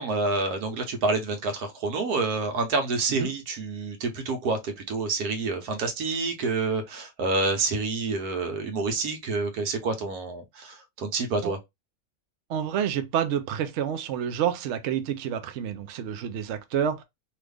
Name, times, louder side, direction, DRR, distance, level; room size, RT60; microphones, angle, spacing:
voice 1, 0.0-11.6, right 3 dB, 80° right, 1.4 m, -28 dB
voice 2, 12.5-17.0, right 9 dB, 65° right, 0.7 m, -28 dB
3.1 x 2.4 x 3.3 m
omnidirectional pair, 1.6 m